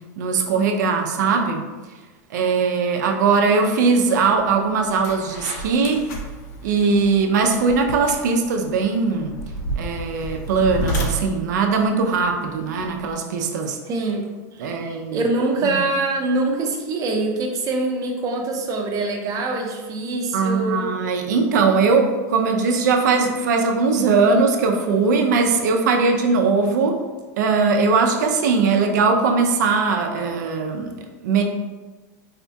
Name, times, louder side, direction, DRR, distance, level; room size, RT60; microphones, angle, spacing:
voice 1, 0.2-1.6 2.3-6.0 6.6-9.3 9.8-13.8 14.6-15.2 15.6-15.8 20.3-27.0 27.4-30.9 31.2-31.4, right 4 dB, 80° right, 3 dB, 0.5 m, -20 dB
sound 1, 4.3-4.5 4.8-13.1, right 1 dB, 65° left, 0.6 m, -31 dB
voice 2, 13.9-20.9, right 3 dB, 35° right, 2 dB, 0.6 m, -24 dB
4.1 x 2.3 x 2.7 m, 1.3 s
supercardioid pair, 125°, 10 cm